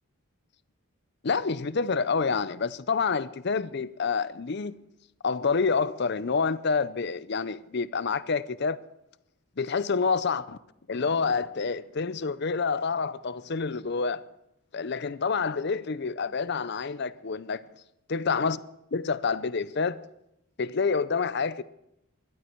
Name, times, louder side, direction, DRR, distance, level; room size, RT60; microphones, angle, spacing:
voice 1, 1.2-4.8 5.2-8.8 9.6-10.6 10.9-14.2 14.7-17.6 18.1-18.6 18.9-20.0 20.6-21.6, left 5 dB, 50° left, 0.6 m, -28 dB
23.0 x 12.0 x 4.6 m
head